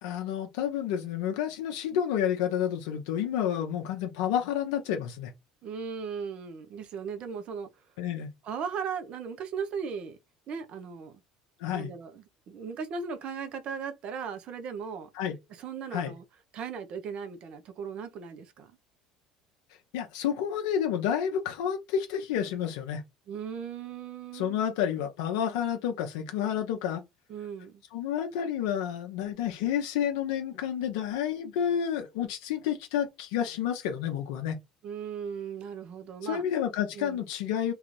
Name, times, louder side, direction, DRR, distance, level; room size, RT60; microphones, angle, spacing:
voice 1, 0.0-5.3 8.0-8.3 11.6-11.9 15.1-15.4 15.9-16.1 19.9-23.0 24.3-27.0 27.9-34.6 36.2-37.7, left 9 dB, 75° left, 0.5 m, -30 dB
voice 2, 5.6-7.7 8.4-10.2 10.5-11.2 11.7-15.1 15.5-16.2 16.5-18.7 23.3-24.7 27.3-27.8 34.8-36.4 36.9-37.2, right 6 dB, 55° right, 0.7 m, -37 dB
3.0 x 2.4 x 3.1 m
hypercardioid pair, 70°, 2 cm